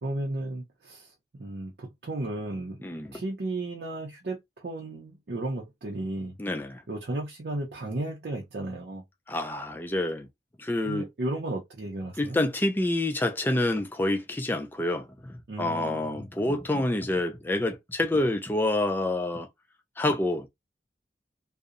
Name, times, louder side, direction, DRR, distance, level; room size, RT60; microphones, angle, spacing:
voice 1, 0.0-2.8 3.1-6.4 6.9-9.0 10.8-12.4 15.5-16.3, right 2 dB, 60° right, 0.5 m, -34 dB
voice 2, 2.8-3.2 6.4-6.8 9.3-10.3 10.6-11.1 12.2-19.5 20.0-20.5, left 1 dB, 10° left, 0.3 m, -28 dB
2.7 x 2.0 x 2.4 m
head